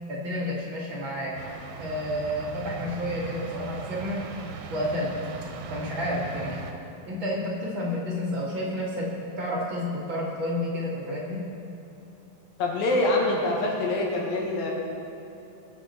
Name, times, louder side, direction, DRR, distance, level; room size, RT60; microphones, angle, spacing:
voice 1, 0.1-1.4 1.8-4.2 4.7-5.2 5.7-6.6 7.0-11.4, left 1 dB, 40° right, -5 dB, 2.2 m, -30 dB
sound 1, 1.4-6.7, right 5 dB, 75° right, 2.6 m, -39 dB
voice 2, 12.6-14.7, left 2 dB, 80° left, -2 dB, 3.4 m, -25 dB
22.0 x 7.3 x 4.3 m, 2.8 s
omnidirectional pair, 4.0 m